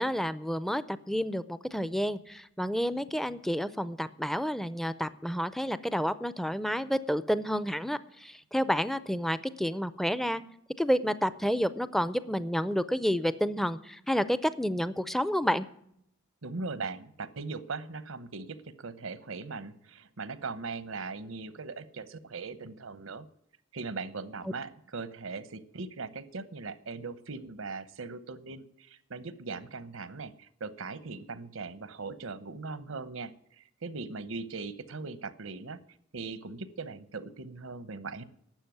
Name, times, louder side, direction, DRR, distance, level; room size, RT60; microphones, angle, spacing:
voice 1, 0.0-10.4 10.8-15.7, equal, ahead, 15 dB, 0.4 m, -30 dB
voice 2, 16.4-23.3 23.7-35.8 36.1-38.2, right 4 dB, 85° right, 14 dB, 1.0 m, -40 dB
12.0 x 7.6 x 9.2 m, 0.73 s
head